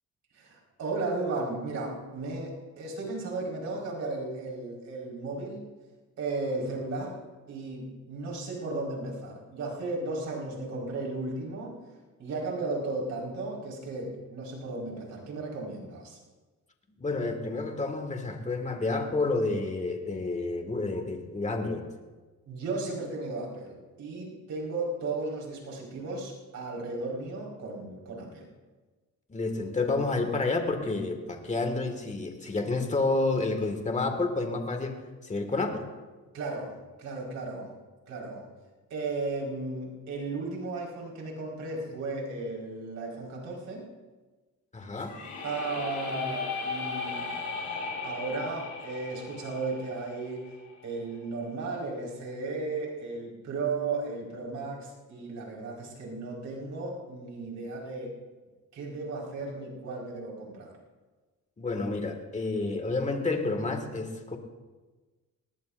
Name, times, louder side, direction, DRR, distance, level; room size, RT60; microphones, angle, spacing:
voice 1, 0.3-5.7 6.2-11.8 12.2-16.2 22.5-28.5 36.3-37.7 38.1-38.5 38.9-43.9 45.4-47.3 48.0-50.5 50.8-58.2 58.7-60.7, right 3 dB, 70° right, -2 dB, 4.9 m, -35 dB
voice 2, 17.0-21.9 29.3-35.9 44.7-45.2 61.6-64.4, left 3 dB, 25° left, 5 dB, 2.0 m, -30 dB
sound 1, 45.0-50.9, left 4 dB, 85° left, 4.6 m, -36 dB
19.5 x 18.5 x 2.6 m, 1.3 s
cardioid pair, 90°, 30 cm